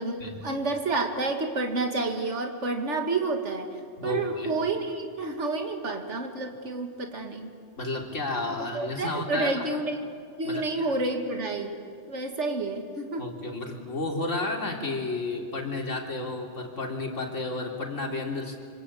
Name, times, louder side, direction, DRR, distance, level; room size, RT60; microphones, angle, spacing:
voice 1, 0.0-3.7 4.0-7.5 8.7-10.0 10.4-11.8 12.1-13.2, right 3 dB, 70° right, 4 dB, 2.4 m, -29 dB
voice 2, 4.0-4.5 7.8-9.7 10.4-10.9 13.2-18.6, left 2 dB, 85° left, 1 dB, 3.6 m, -32 dB
26.5 x 25.5 x 8.6 m, 2.3 s
omnidirectional pair, 1.3 m